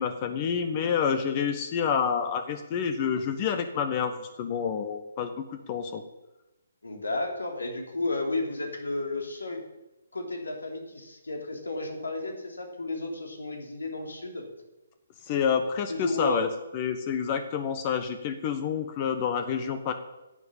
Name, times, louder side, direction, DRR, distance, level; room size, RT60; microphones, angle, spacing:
voice 1, 0.0-6.0 15.3-16.5 16.7-19.9, left 7 dB, 30° left, 8 dB, 1.1 m, -28 dB
voice 2, 6.8-9.6 10.1-14.4 15.9-16.4, left 2 dB, 75° left, 2 dB, 3.3 m, -32 dB
10.5 x 8.0 x 8.8 m, 1.0 s
figure-of-eight pair, 135°, 0 cm